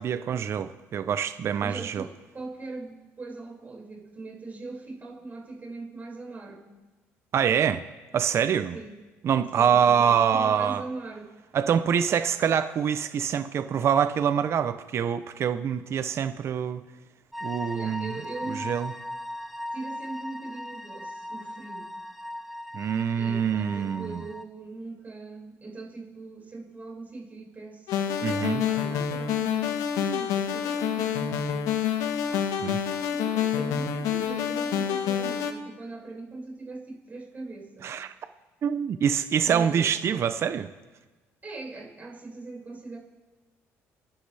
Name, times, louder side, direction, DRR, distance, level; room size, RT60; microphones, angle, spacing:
voice 1, 0.0-2.0 7.3-7.8 8.1-8.8 9.2-10.8 11.5-16.8 17.4-18.1 18.6-18.9 22.7-24.2 28.2-28.6 32.6-32.8 37.8-38.1 38.6-40.7, right 8 dB, 50° right, 10 dB, 0.7 m, -25 dB
voice 2, 1.6-6.7 8.7-9.0 9.5-11.4 17.7-18.7 19.7-21.9 23.2-31.7 32.3-37.9 39.4-39.9 41.4-43.0, right 3 dB, 30° right, -1 dB, 5.7 m, -41 dB
sound 1, 17.3-24.4, left 1 dB, ahead, 1.3 m, -38 dB
sound 2, 27.9-35.5, left 8 dB, 80° left, 1.4 m, -27 dB
28.5 x 12.0 x 3.4 m, 1.2 s
supercardioid pair, 85°, 6 cm